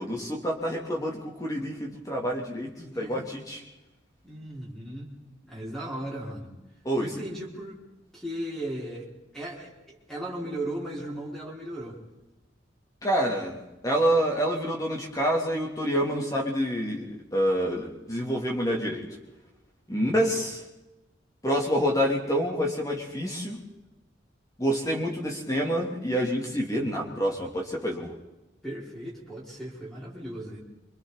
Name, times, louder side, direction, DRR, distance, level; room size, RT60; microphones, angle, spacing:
voice 1, 0.0-3.6 6.8-7.1 13.0-19.0 19.9-20.6 21.4-23.6 24.6-28.1, equal, 15° left, -1 dB, 3.3 m, -27 dB
voice 2, 2.8-3.2 4.2-5.1 5.5-6.5 7.0-7.8 8.1-9.1 9.3-12.0 19.9-20.3 25.6-25.9 28.6-30.6, right 1 dB, ahead, -4 dB, 4.9 m, -37 dB
28.0 x 26.0 x 4.3 m, 1.0 s
head